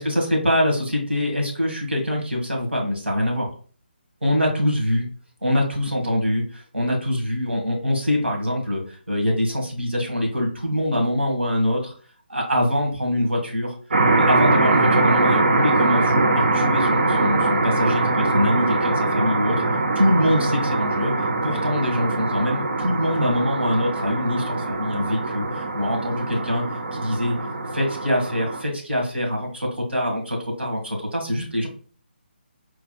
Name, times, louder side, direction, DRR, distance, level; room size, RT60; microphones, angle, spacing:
voice 1, 0.0-3.5 4.2-5.1 5.4-8.8 9.1-11.9 12.3-13.8 14.1-19.6 20.0-21.1 21.4-26.6 26.9-27.4 27.7-31.7, left 1 dB, 90° right, 1 dB, 1.7 m, -24 dB
sound 1, 13.9-28.6, right 2 dB, 65° right, 0.7 m, -22 dB
4.5 x 3.2 x 2.3 m, 0.42 s
figure-of-eight pair, 150°, 6 cm